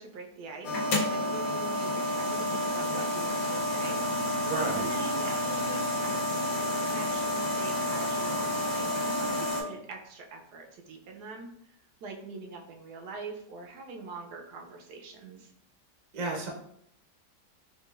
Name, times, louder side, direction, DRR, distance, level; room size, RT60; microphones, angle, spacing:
voice 1, 0.0-4.0 4.8-11.5 12.0-15.5, right 3 dB, 75° right, 2 dB, 1.1 m, -43 dB
sound 1, 0.6-9.6, left 1 dB, 75° left, 1.4 m, -30 dB
Bowed string instrument, 3.5-10.1, left 3 dB, 90° left, 1.3 m, -47 dB
voice 2, 4.4-4.9 16.1-16.5, right 3 dB, 45° right, -2 dB, 0.5 m, -32 dB
4.8 x 2.4 x 2.3 m, 0.71 s
omnidirectional pair, 1.8 m